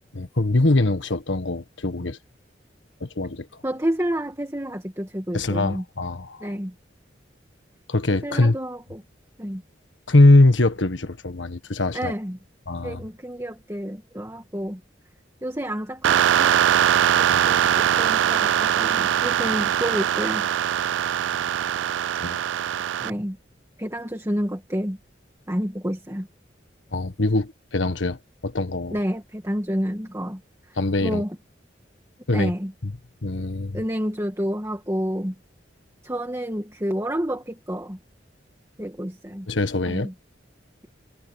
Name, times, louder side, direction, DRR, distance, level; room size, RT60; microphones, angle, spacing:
voice 1, 0.1-2.2 3.0-3.5 5.3-6.5 7.9-8.6 10.1-12.1 12.7-13.0 17.3-17.4 22.2-22.4 26.9-29.0 30.8-31.2 32.3-32.5 32.8-32.9 33.2-33.8 39.5-40.1, left 2 dB, 90° left, 1.5 m, -22 dB
voice 2, 3.6-5.8 6.4-6.7 8.1-9.0 9.4-9.6 11.9-12.4 12.8-14.8 15.4-16.6 17.2-20.5 23.0-23.4 23.8-25.0 25.5-26.3 28.9-30.4 30.7-31.4 32.3-32.7 33.7-35.3 36.0-38.0 38.8-39.5 39.9-40.1, equal, 15° right, 2.1 m, -29 dB
sound 1, 16.0-23.1, right 10 dB, 80° right, 0.3 m, -21 dB
head